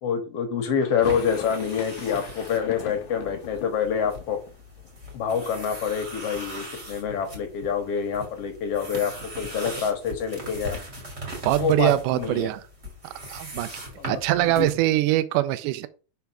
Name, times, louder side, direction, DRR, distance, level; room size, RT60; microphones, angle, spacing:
voice 1, 0.0-4.4 5.1-10.8 11.6-12.5 14.0-14.2 14.6-14.7, left 7 dB, 60° left, 1.9 m, -27 dB
sound 1, 0.8-6.7 7.0-7.8 8.1-8.2 8.4-10.6, left 11 dB, 75° left, 2.0 m, -44 dB
sound 2, 1.0-14.7, right 1 dB, 25° right, 2.2 m, -40 dB
voice 2, 11.5-12.6 13.0-13.7 14.0-15.9, right 15 dB, 85° right, 2.1 m, -23 dB
5.7 x 4.5 x 6.0 m
omnidirectional pair, 3.6 m